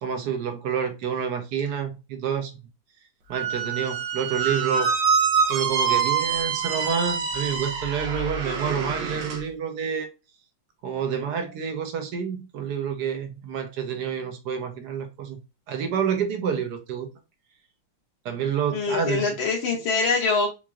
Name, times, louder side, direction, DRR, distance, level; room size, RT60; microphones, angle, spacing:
voice 1, 0.0-2.5 3.3-4.9 5.5-10.1 10.8-15.4 15.7-17.1 18.2-19.4, right 7 dB, 60° right, 1.2 m, -28 dB
Squeak, 3.3-9.4, right 6 dB, 75° right, 1.8 m, -25 dB
voice 2, 18.7-20.5, left 4 dB, 70° left, 1.5 m, -24 dB
4.7 x 2.8 x 2.3 m
omnidirectional pair, 2.4 m